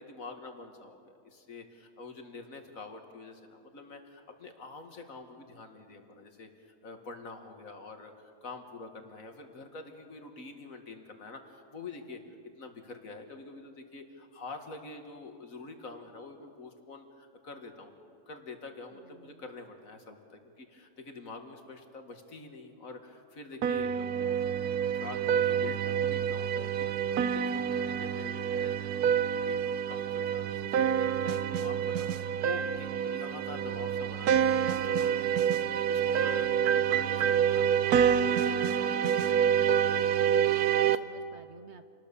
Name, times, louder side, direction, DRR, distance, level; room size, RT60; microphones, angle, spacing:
voice 1, 0.0-18.0 18.3-24.6 25.0-29.2 29.4-39.4, left 3 dB, 65° left, 5 dB, 2.2 m, -46 dB
voice 2, 18.9-19.4 40.3-41.9, right 5 dB, 55° right, 9 dB, 1.0 m, -54 dB
sound 1, 23.6-41.0, right 8 dB, 80° right, 1.3 m, -27 dB
27.5 x 19.5 x 6.9 m, 2.3 s
omnidirectional pair, 1.6 m